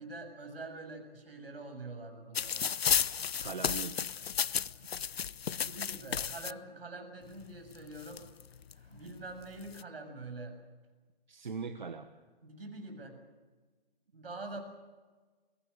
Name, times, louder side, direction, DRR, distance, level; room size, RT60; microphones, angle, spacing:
voice 1, 0.0-2.7 5.4-8.2 8.7-10.5 12.4-13.2 14.1-14.6, right 2 dB, 70° right, 5 dB, 7.0 m, -45 dB
sound 1, 2.4-6.5 7.4-7.5 7.8-8.7 9.4-9.8, left 8 dB, 80° left, 0.7 m, -33 dB
voice 2, 3.4-4.1 11.3-12.1, right 5 dB, 50° right, 8 dB, 1.3 m, -40 dB
23.0 x 19.5 x 8.1 m, 1.3 s
hypercardioid pair, 180°, 30 cm